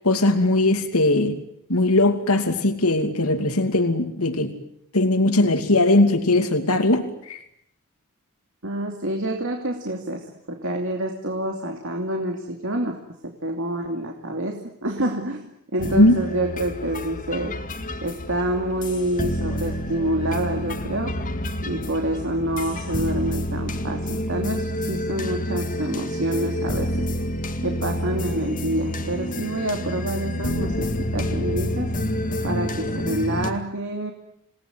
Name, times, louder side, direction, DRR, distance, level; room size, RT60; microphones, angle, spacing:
voice 1, 0.0-1.3 1.7-4.5 4.9-7.4 16.0-16.1, left 2 dB, 75° left, 7 dB, 2.6 m, -19 dB
voice 2, 8.6-13.0 13.2-17.6 18.0-21.1 21.6-27.1 27.6-31.9 32.4-34.1, right 1 dB, 60° right, 2 dB, 2.8 m, -27 dB
sound 1, 15.8-33.5, left 1 dB, 35° left, 2.2 m, -28 dB
28.5 x 19.0 x 9.6 m, 0.77 s
head